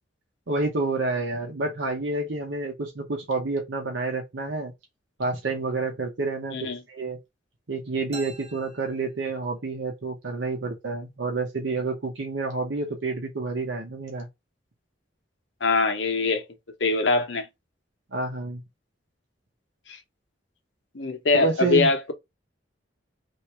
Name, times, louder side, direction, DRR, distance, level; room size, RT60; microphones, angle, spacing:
voice 1, 0.5-4.7 5.2-7.2 7.7-14.3 18.1-18.6 21.3-21.9, right 3 dB, 80° right, 0.9 m, -29 dB
sound 1, 8.1-9.8, right 3 dB, 35° right, 1.0 m, -45 dB
voice 2, 15.6-16.4 16.8-17.5 19.9-20.0 20.9-22.1, left 3 dB, 80° left, 0.9 m, -23 dB
3.1 x 2.6 x 4.3 m
head